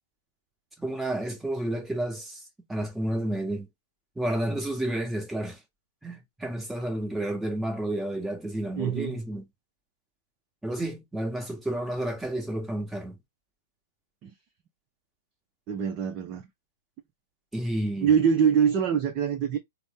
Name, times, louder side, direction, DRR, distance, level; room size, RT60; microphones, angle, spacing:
voice 1, 0.8-2.4 2.7-3.7 4.2-5.6 6.0-9.4 10.6-13.2 17.5-18.1, right 1 dB, 5° right, 1.3 m, -31 dB
voice 2, 8.8-9.2 14.2-14.3 15.7-16.5 18.0-19.6, right 7 dB, 30° right, 0.7 m, -24 dB
4.0 x 2.1 x 3.7 m
figure-of-eight pair, 115°, 0 cm